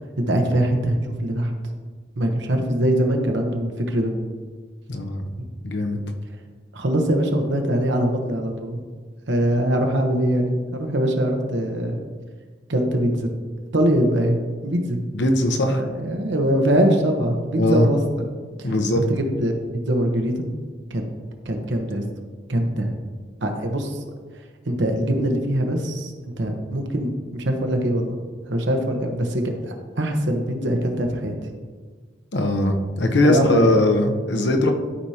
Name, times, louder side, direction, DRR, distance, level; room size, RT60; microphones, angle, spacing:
voice 1, 0.2-1.5 2.1-4.1 6.7-8.8 9.3-12.0 12.7-13.3 13.7-15.0 15.7-18.2 18.6-18.7 18.9-20.5 20.9-21.0 21.4-22.0 22.5-22.9 23.4-24.0 24.6-26.1 26.4-28.2 28.5-31.3 33.2-33.8, right 1 dB, 85° right, 4 dB, 1.1 m, -22 dB
voice 2, 4.9-5.2 5.6-6.0 15.1-15.8 17.5-17.9 18.6-19.0 32.3-34.7, left 1 dB, 75° left, 4 dB, 0.9 m, -20 dB
12.5 x 4.9 x 2.9 m, 1.5 s
head